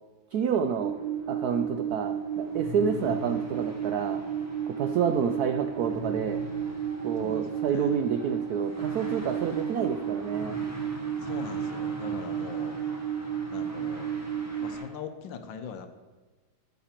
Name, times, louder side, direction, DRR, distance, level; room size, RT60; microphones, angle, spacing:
voice 1, 0.3-0.9 1.3-4.2 4.7-6.4 7.0-10.6, right 7 dB, 90° right, 7 dB, 0.8 m, -29 dB
sound 1, 0.6-14.8, left 2 dB, 10° right, 1.2 m, -44 dB
sound 2, 0.8-14.8, right 9 dB, 75° right, 1.2 m, -32 dB
voice 2, 7.2-8.0 11.2-12.8 13.5-14.1 14.6-15.9, left 7 dB, 70° left, 7 dB, 1.5 m, -42 dB
14.5 x 6.8 x 4.3 m, 1.3 s
omnidirectional pair, 2.3 m